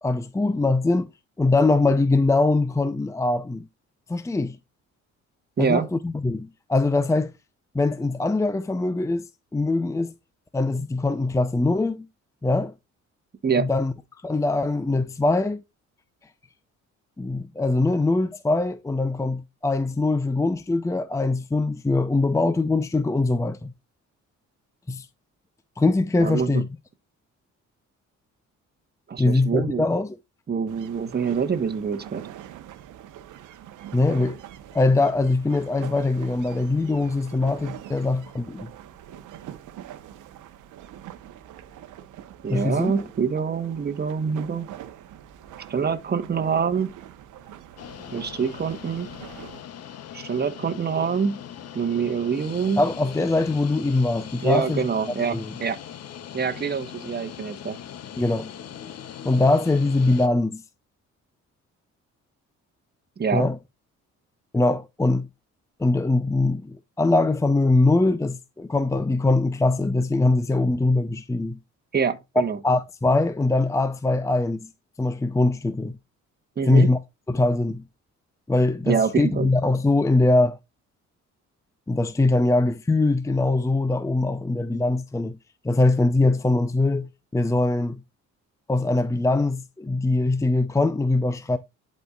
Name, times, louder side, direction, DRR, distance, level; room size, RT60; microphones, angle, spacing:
voice 1, 0.0-1.1 1.4-3.7 4.1-4.6 5.6-7.3 7.7-9.3 9.5-10.1 10.5-12.1 12.4-12.7 13.6-13.9 14.2-15.6 17.2-23.7 24.9-25.1 25.8-26.7 29.2-30.2 33.9-34.4 34.7-38.7 42.5-42.9 52.8-54.9 55.3-55.5 58.2-58.5 59.2-60.6 63.3-63.6 64.5-65.3 65.8-71.6 72.6-74.7 75.0-75.9 76.7-77.0 77.3-77.8 78.5-80.6 81.9-85.4 85.6-88.0 88.7-91.6, left 2 dB, 10° left, 0.6 m, -22 dB
voice 2, 5.6-5.9 13.4-13.7 26.2-26.6 29.1-29.8 30.5-32.2 42.4-44.7 45.7-46.9 48.1-49.1 50.1-51.4 51.7-52.8 54.4-55.8 56.3-57.8 63.2-63.5 71.9-72.6 76.6-76.9 78.8-79.5, right 6 dB, 35° right, 1.1 m, -25 dB
sound 1, 30.7-49.6, right 11 dB, 85° right, 1.0 m, -44 dB
sound 2, 47.8-60.3, left 9 dB, 55° left, 0.8 m, -40 dB
11.5 x 4.3 x 2.4 m
cardioid pair, 90°, 30 cm